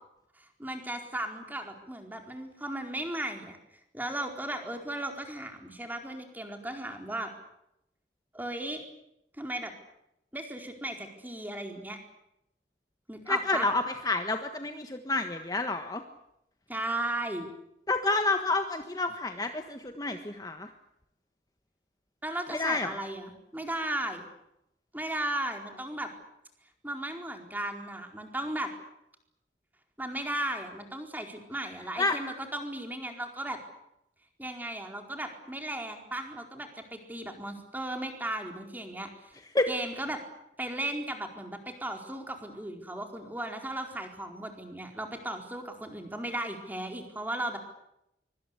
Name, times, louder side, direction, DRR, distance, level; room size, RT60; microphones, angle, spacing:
voice 1, 0.4-3.6 3.9-7.3 8.3-8.8 9.4-9.7 10.3-12.0 13.1-13.7 16.7-17.5 22.2-24.2 24.9-26.1 26.8-28.7 30.0-33.6 34.4-39.3 39.7-40.2 40.6-47.6, right 1 dB, 10° right, 4 dB, 4.4 m, -36 dB
voice 2, 13.3-16.0 17.9-20.7 22.5-23.0 32.0-32.2 39.5-39.7, left 2 dB, 20° left, 6 dB, 1.4 m, -29 dB
24.5 x 24.5 x 8.3 m, 0.82 s
head